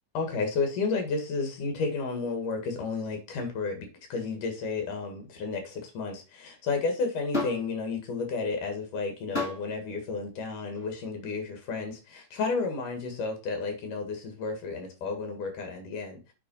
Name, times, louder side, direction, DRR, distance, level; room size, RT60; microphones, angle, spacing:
voice 1, 0.2-16.2, left 4 dB, 70° left, 4 dB, 3.5 m, -32 dB
sound 1, 7.3-7.7 9.3-9.7 10.7-10.9, left 3 dB, 20° left, 2.4 m, -31 dB
8.5 x 4.2 x 5.6 m, 0.32 s
omnidirectional pair, 3.9 m